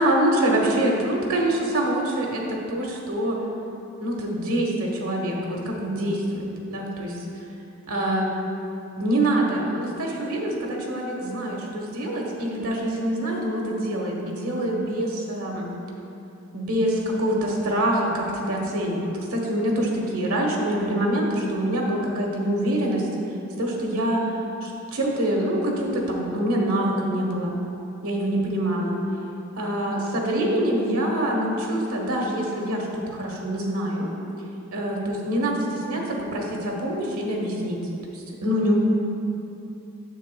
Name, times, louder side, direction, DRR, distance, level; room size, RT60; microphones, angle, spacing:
voice 1, 0.0-3.4 4.0-7.2 7.9-8.3 9.0-15.7 16.5-19.0 19.3-23.1 23.6-27.5 28.0-29.0 29.6-34.1 34.7-38.7, right 1 dB, 85° right, -1 dB, 1.2 m, -25 dB
9.2 x 7.4 x 2.3 m, 2.8 s
head